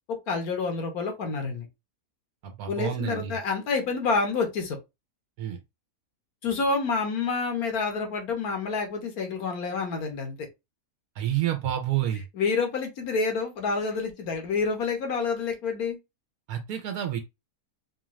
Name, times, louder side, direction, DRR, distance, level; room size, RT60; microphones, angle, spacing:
voice 1, 0.3-1.7 2.7-4.8 6.4-10.5 12.1-16.0, left 4 dB, 80° left, 1.6 m, -28 dB
voice 2, 2.4-3.3 5.4-5.6 11.2-12.2 16.5-17.2, right 11 dB, 90° right, 1.1 m, -29 dB
4.1 x 2.4 x 3.0 m
omnidirectional pair, 1.5 m